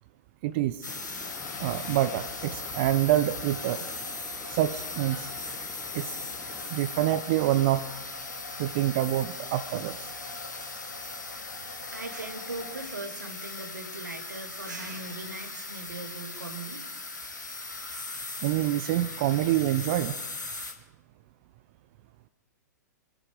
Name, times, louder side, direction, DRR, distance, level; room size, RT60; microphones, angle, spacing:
voice 1, 0.4-0.9 1.6-3.9 4.5-5.3 5.9-6.2 6.7-7.8 8.6-10.1 18.4-20.2, right 13 dB, 40° right, 14 dB, 0.6 m, -26 dB
sound 1, 0.8-20.7, left 3 dB, 80° left, 2.3 m, -39 dB
sound 2, 0.9-6.7, left 7 dB, 25° left, 1.4 m, -47 dB
sound 3, 1.2-12.8, left 4 dB, 50° left, 4.5 m, -47 dB
voice 2, 11.9-16.9, right 2 dB, 75° right, 5 dB, 2.4 m, -39 dB
26.0 x 10.0 x 4.8 m, 1.1 s
figure-of-eight pair, 110°, 10 cm